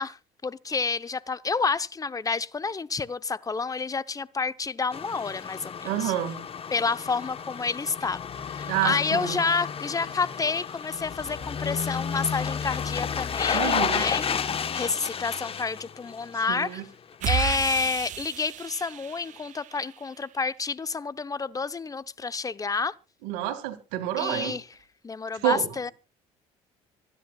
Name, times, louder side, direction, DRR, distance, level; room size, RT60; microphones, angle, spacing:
voice 1, 0.0-6.1 6.7-8.2 8.5-14.2 14.7-16.8 17.2-22.9 24.2-24.6 25.0-25.9, left 4 dB, 25° left, 0.9 m, -29 dB
sound 1, 4.9-16.8 17.1-17.2, left 7 dB, 40° left, 1.2 m, -32 dB
voice 2, 5.8-6.4 8.7-9.4 13.5-14.0 16.5-16.8 23.2-24.5 25.4-25.7, right 12 dB, 85° right, 2.3 m, -28 dB
sound 2, 17.2-19.9, right 11 dB, 60° right, 0.7 m, -32 dB
25.5 x 10.0 x 2.4 m
supercardioid pair, 75°, 15 cm